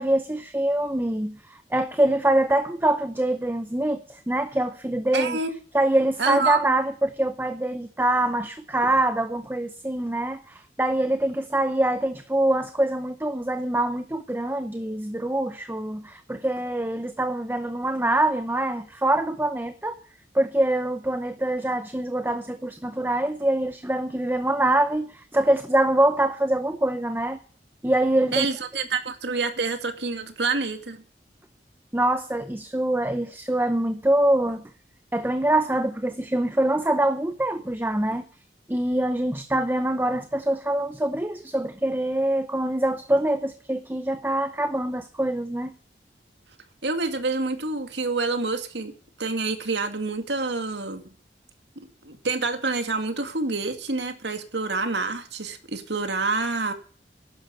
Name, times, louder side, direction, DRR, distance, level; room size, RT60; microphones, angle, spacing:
voice 1, 0.0-5.4 5.7-20.0 20.3-27.4 27.8-28.5 31.9-34.6 35.1-38.3 38.7-45.7, right 1 dB, 10° right, 10 dB, 0.7 m, -24 dB
voice 2, 5.1-5.6 6.2-6.7 28.3-31.0 46.8-48.9 49.2-51.2 52.0-56.7, right 3 dB, 80° right, 7 dB, 2.2 m, -27 dB
12.0 x 10.0 x 6.8 m, 0.44 s
head